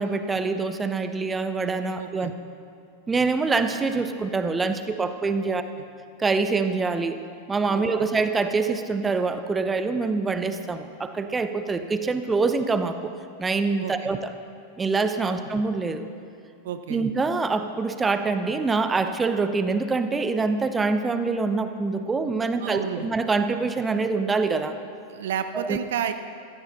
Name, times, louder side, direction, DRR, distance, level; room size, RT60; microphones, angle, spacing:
voice 1, 0.0-2.3 3.1-5.6 6.2-7.2 7.5-13.1 13.4-14.3 14.8-16.0 16.9-24.7 25.5-25.8, right 4 dB, 15° right, 9 dB, 0.8 m, -25 dB
voice 2, 1.9-2.3 5.5-5.6 7.7-8.1 13.8-14.1 15.3-15.4 16.6-17.0 22.6-23.1 25.1-26.1, right 9 dB, 60° right, 10 dB, 0.7 m, -31 dB
17.5 x 15.0 x 3.9 m, 2.3 s
figure-of-eight pair, 90°, 0 cm